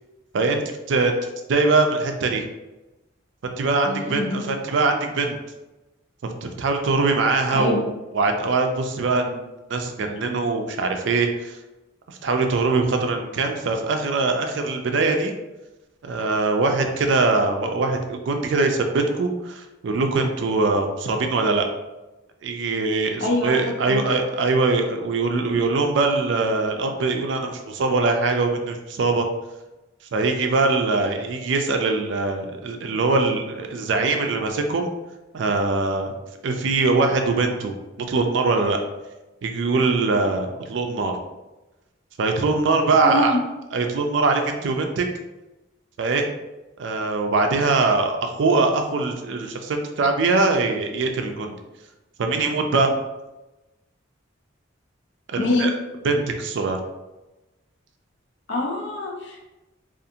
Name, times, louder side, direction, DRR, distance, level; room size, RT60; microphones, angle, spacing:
voice 1, 1.5-2.5 3.4-5.4 6.4-7.8 8.1-11.6 12.1-15.3 16.0-21.6 22.4-29.3 30.1-34.9 35.3-36.1 36.4-37.7 38.1-38.8 39.4-41.2 42.2-43.3 43.7-45.1 46.0-46.3 46.8-51.6 52.2-52.9 55.3-55.7 56.0-56.8, right 3 dB, 65° right, 4 dB, 0.4 m, -22 dB
voice 2, 3.8-4.4 7.5-7.8 23.2-24.0 43.0-43.4 55.4-55.7 58.5-59.4, left 2 dB, 60° left, 0 dB, 0.6 m, -24 dB
2.5 x 2.4 x 2.7 m, 1.0 s
head